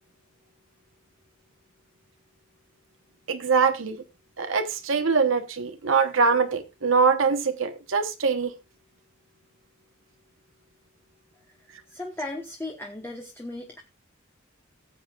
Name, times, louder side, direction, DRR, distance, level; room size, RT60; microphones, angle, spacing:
voice 1, 3.3-4.0 4.4-8.5, right 5 dB, 75° right, 1.0 m, -23 dB
voice 2, 11.9-13.8, left 2 dB, 10° left, 1.1 m, -36 dB
17.5 x 7.9 x 2.4 m
head